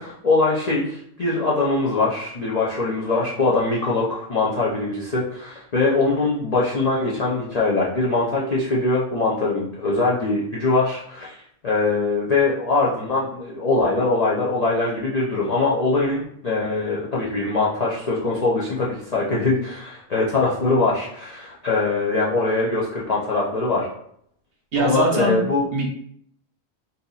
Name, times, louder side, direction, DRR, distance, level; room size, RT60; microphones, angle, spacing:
voice 1, 0.0-11.4 11.6-23.9 24.8-25.7, left 3 dB, 55° left, -6 dB, 0.4 m, -22 dB
voice 2, 24.7-25.4 25.7-25.9, right 2 dB, 55° right, -1 dB, 0.8 m, -21 dB
2.7 x 2.5 x 3.8 m, 0.68 s
omnidirectional pair, 1.4 m